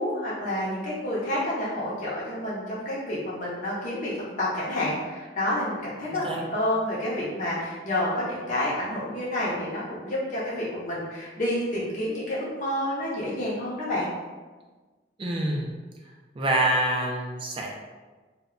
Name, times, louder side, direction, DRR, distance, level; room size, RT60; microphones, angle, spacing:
voice 1, 0.0-14.1, left 1 dB, 45° left, -7 dB, 0.6 m, -29 dB
voice 2, 15.2-15.7 16.3-17.7, right 1 dB, 30° right, -1 dB, 0.4 m, -26 dB
2.1 x 2.1 x 3.6 m, 1.3 s
head